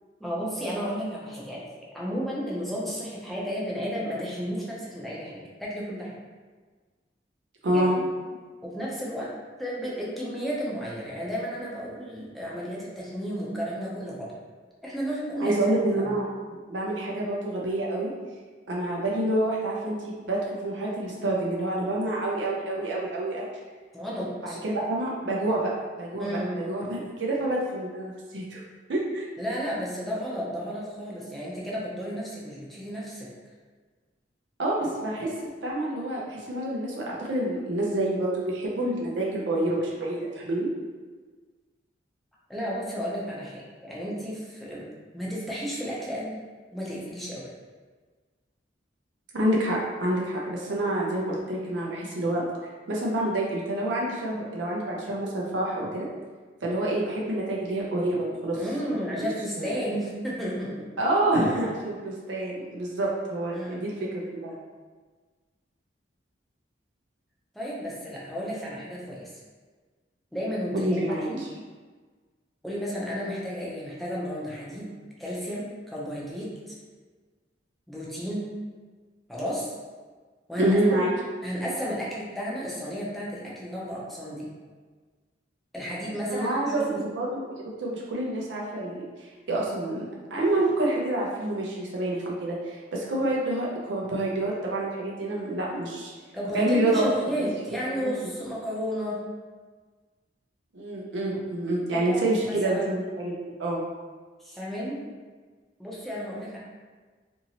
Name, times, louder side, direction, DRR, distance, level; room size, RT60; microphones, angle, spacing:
voice 1, 0.2-6.2 7.7-8.0 8.6-9.3 9.6-14.3 14.8-16.1 23.9-24.6 26.2-26.5 29.4-33.3 42.5-44.9 45.1-46.4 46.7-47.5 58.5-60.9 63.5-63.8 67.5-69.3 70.3-71.0 71.3-71.4 72.6-74.9 75.2-76.8 77.9-78.5 79.3-79.7 80.5-81.1 81.4-84.5 85.7-87.0 96.3-99.2 101.9-102.2 102.5-103.0 104.4-105.0 105.8-106.6, equal, ahead, -7 dB, 0.6 m, -33 dB
voice 2, 7.6-8.0 15.4-16.3 16.7-18.1 18.7-23.4 24.4-26.3 26.6-28.6 28.9-29.3 34.6-35.3 35.6-40.7 49.3-52.4 52.9-56.1 56.6-58.6 58.8-59.3 59.6-59.8 61.0-63.9 64.3-64.5 70.7-71.5 80.6-81.1 86.3-96.1 96.5-97.3 97.9-98.1 100.7-103.3 103.6-103.8, right 1 dB, 70° right, -4 dB, 0.5 m, -27 dB
2.8 x 2.6 x 2.8 m, 1.4 s
head